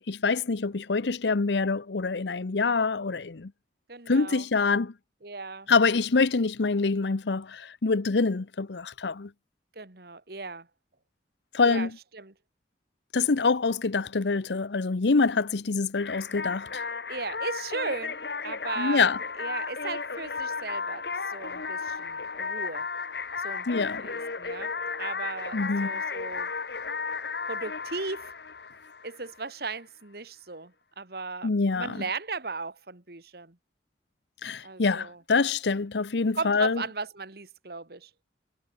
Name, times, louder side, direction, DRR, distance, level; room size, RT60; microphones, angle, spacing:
voice 1, 0.0-3.5 4.1-4.9 5.7-9.3 11.5-11.9 13.1-16.8 18.8-19.2 23.7-24.0 25.5-25.9 31.4-32.0 34.4-36.8, left 4 dB, 80° left, 0.8 m, -25 dB
voice 2, 3.9-4.5 5.2-5.7 9.8-10.7 11.6-12.3 17.1-22.9 23.4-24.7 25.0-26.5 27.4-28.3 29.0-33.6 34.6-35.2 36.3-38.1, right 3 dB, 60° right, 2.0 m, -37 dB
sound 1, 16.0-29.4, left 5 dB, 65° left, 1.4 m, -34 dB
head